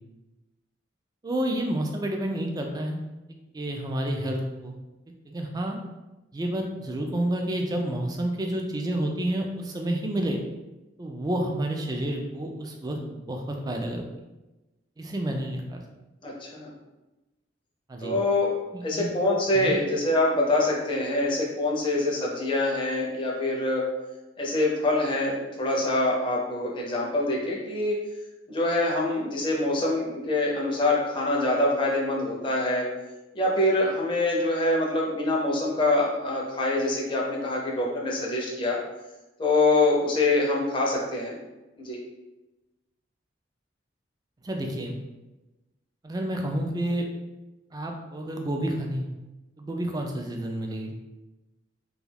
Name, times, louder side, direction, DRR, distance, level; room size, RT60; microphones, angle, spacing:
voice 1, 1.2-3.0 3.5-4.7 5.3-5.8 6.3-10.4 11.0-14.0 15.0-15.8 17.9-18.1 18.7-19.1 19.5-19.8 44.4-45.0 46.0-47.0 47.7-49.1 49.6-51.0, right 1 dB, 20° right, 2 dB, 0.3 m, -29 dB
voice 2, 16.2-16.7 18.0-18.5 18.8-23.8 24.4-28.0 28.5-32.9 33.3-38.8 39.4-41.3 41.8-42.0, left 2 dB, 25° left, -3 dB, 0.5 m, -25 dB
2.3 x 2.3 x 3.3 m, 1.0 s
head